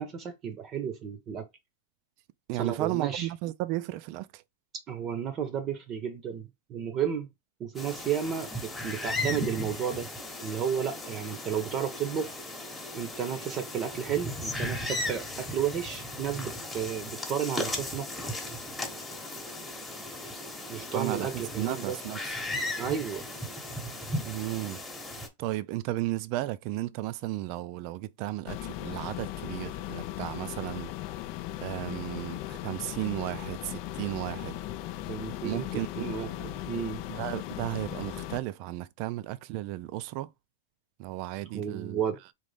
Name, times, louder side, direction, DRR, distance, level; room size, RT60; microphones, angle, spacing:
voice 1, 0.0-1.4 2.6-3.3 4.9-7.3 7.6-10.1 10.4-12.3 12.9-18.1 20.7-22.0 22.8-23.3 35.1-35.7 36.0-37.0 41.5-42.2, right 8 dB, 30° right, 0.8 m, -32 dB
voice 2, 2.5-4.4 20.9-22.4 24.2-24.8 25.4-30.9 31.6-34.6 35.4-36.1 37.1-40.3 41.0-42.0, right 16 dB, 45° right, 0.4 m, -34 dB
sound 1, 7.7-25.3, left 1 dB, 5° left, 1.1 m, -36 dB
sound 2, 28.5-38.4, left 13 dB, 45° left, 0.4 m, -38 dB
4.0 x 3.1 x 3.3 m
supercardioid pair, 140°, 0 cm